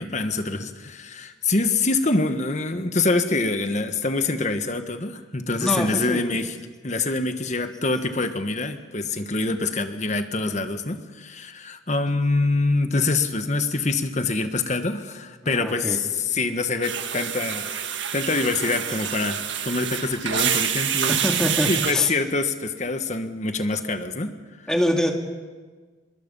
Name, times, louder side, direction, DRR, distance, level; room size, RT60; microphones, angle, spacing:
voice 1, 0.0-6.6 6.8-17.6 18.1-21.2 21.7-24.3, left 3 dB, 35° left, 8 dB, 1.4 m, -25 dB
voice 2, 5.6-6.2 15.5-16.0 21.1-22.1 24.7-25.1, equal, 5° left, 2 dB, 2.1 m, -24 dB
sound 1, 16.8-21.9, right 9 dB, 70° right, 1.6 m, -27 dB
25.0 x 22.5 x 5.5 m, 1.4 s
head